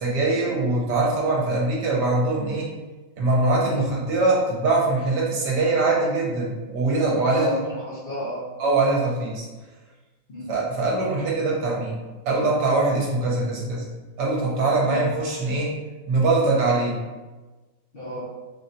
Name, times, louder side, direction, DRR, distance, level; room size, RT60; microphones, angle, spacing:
voice 1, 0.0-2.7 3.2-7.5 8.6-9.4 10.5-12.0 12.3-13.8 14.2-15.7 16.1-17.0, right 3 dB, 65° right, -3 dB, 1.3 m, -22 dB
voice 2, 7.3-8.5 10.3-10.5 14.8-15.0 17.9-18.2, left 1 dB, 45° left, -10 dB, 0.7 m, -31 dB
4.2 x 3.1 x 2.7 m, 1.2 s
omnidirectional pair, 2.0 m